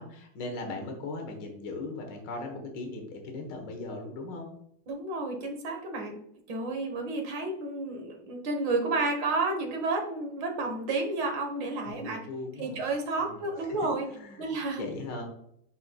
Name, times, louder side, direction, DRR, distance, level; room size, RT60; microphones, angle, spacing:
voice 1, 0.0-4.5 11.9-12.8 13.2-13.4 13.7-13.8 14.1-14.5 14.8-15.2, left 2 dB, 70° left, 3 dB, 1.8 m, -38 dB
voice 2, 4.9-6.2 6.5-12.3 12.6-14.1 14.4-14.8, right 3 dB, 75° right, 3 dB, 2.0 m, -31 dB
10.0 x 4.3 x 2.2 m, 0.71 s
omnidirectional pair, 2.0 m